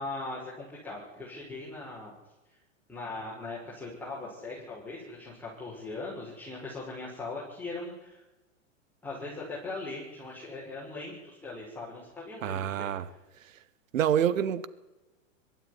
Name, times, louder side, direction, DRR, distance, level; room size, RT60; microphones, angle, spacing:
voice 1, 0.0-2.1 2.9-8.2 9.0-12.9, left 2 dB, 5° left, 6.1 m, -40 dB
voice 2, 12.4-13.1 13.9-14.7, right 9 dB, 75° right, 1.5 m, -27 dB
22.0 x 13.5 x 9.9 m
hypercardioid pair, 135°, 39 cm